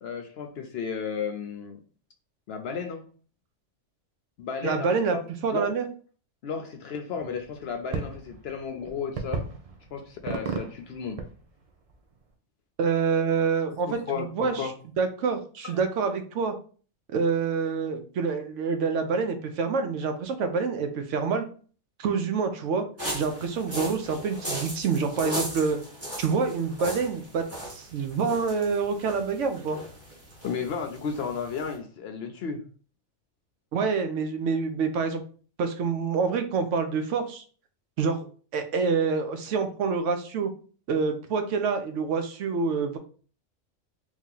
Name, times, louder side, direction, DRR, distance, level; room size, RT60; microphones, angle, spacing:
voice 1, 0.0-1.8 2.5-3.1 4.4-5.2 5.5-5.7 6.4-9.5 9.9-11.2 13.9-14.8 15.6-15.8 30.4-32.6, left 6 dB, 65° left, 5 dB, 0.7 m, -33 dB
voice 2, 4.6-5.2 5.4-5.9 12.8-14.7 15.0-16.5 17.1-21.5 22.0-22.8 23.1-25.8 26.2-27.4 27.7-29.8 33.7-35.2 35.6-37.4 38.0-38.2 38.5-40.5 40.9-43.0, right 5 dB, 75° right, 7 dB, 0.9 m, -27 dB
sound 1, 7.2-12.2, right 4 dB, 50° right, 0.4 m, -36 dB
sound 2, 23.0-31.8, right 1 dB, 10° right, 1.2 m, -38 dB
3.0 x 2.8 x 3.7 m, 0.41 s
omnidirectional pair, 1.3 m